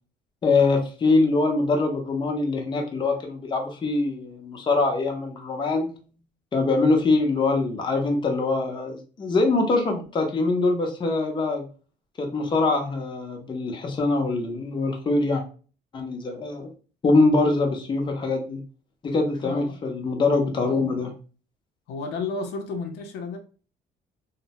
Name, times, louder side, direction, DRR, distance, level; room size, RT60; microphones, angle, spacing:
voice 1, 0.4-6.0 6.5-11.6 12.2-15.4 15.9-16.7 17.0-18.6 19.0-21.1, left 3 dB, 30° left, 3 dB, 0.6 m, -23 dB
voice 2, 19.4-19.8 21.9-23.4, left 4 dB, 80° left, 4 dB, 0.5 m, -32 dB
2.7 x 2.0 x 2.8 m, 0.37 s
cardioid pair, 110°, 17 cm